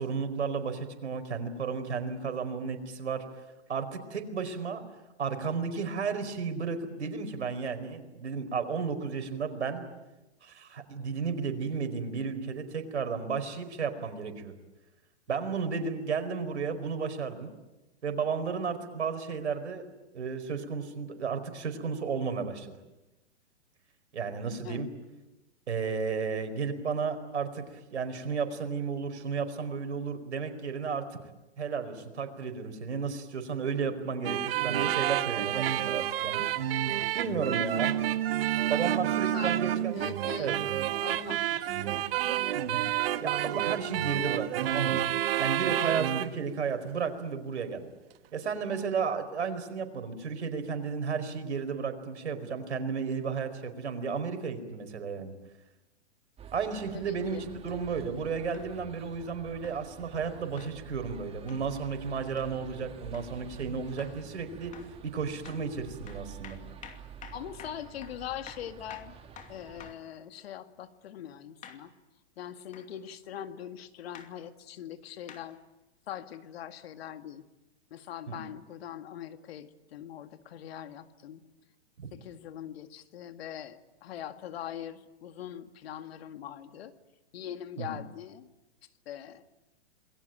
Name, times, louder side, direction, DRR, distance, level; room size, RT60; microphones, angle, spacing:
voice 1, 0.0-3.2 3.7-4.8 5.2-9.8 10.4-14.5 15.3-17.5 18.0-19.9 20.1-22.7 24.1-24.9 25.7-31.2 31.6-36.6 37.1-38.1 38.7-40.0 40.4-40.5 42.5-42.9 43.2-45.0 45.4-47.9 48.3-55.3 56.5-57.4 57.6-64.7 65.0-66.6 78.3-78.4 82.0-82.1 87.8-88.0, right 5 dB, 80° right, 8 dB, 4.8 m, -33 dB
sound 1, 34.2-46.3, right 12 dB, 60° right, 1.5 m, -29 dB
voice 2, 39.1-39.7 39.9-40.5 41.0-42.4 56.9-57.5 67.3-69.1 69.5-71.9 72.4-75.6 76.1-77.5 77.9-81.4 82.1-86.9 87.3-88.5 89.1-89.4, left 10 dB, 65° left, 9 dB, 2.0 m, -42 dB
sound 2, 56.4-70.0, right 7 dB, 15° right, 1.7 m, -48 dB
sound 3, 58.5-58.7 59.6-59.8 60.6-60.8 61.5-61.7 62.4-62.5 63.1-63.3 64.0-64.2 64.7-65.0 65.4-65.7 66.1-70.1 71.6-71.9 72.7-72.9 74.1-74.3 75.3-75.5 76.3-76.4, left 7 dB, 20° left, 2.6 m, -49 dB
28.0 x 21.0 x 9.0 m, 1.0 s
hypercardioid pair, 130°, 33 cm